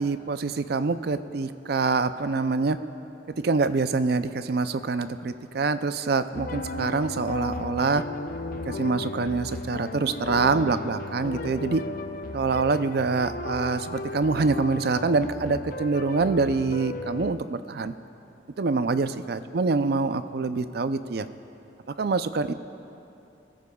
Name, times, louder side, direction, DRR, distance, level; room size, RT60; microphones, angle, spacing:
voice 1, 0.0-2.8 3.4-8.0 8.6-11.8 12.3-17.9 18.6-21.3 22.0-22.5, right 4 dB, 60° right, 11 dB, 0.4 m, -25 dB
sound 1, 6.3-17.3, left 2 dB, 50° left, 0.5 m, -35 dB
22.0 x 14.5 x 2.3 m, 2.7 s
head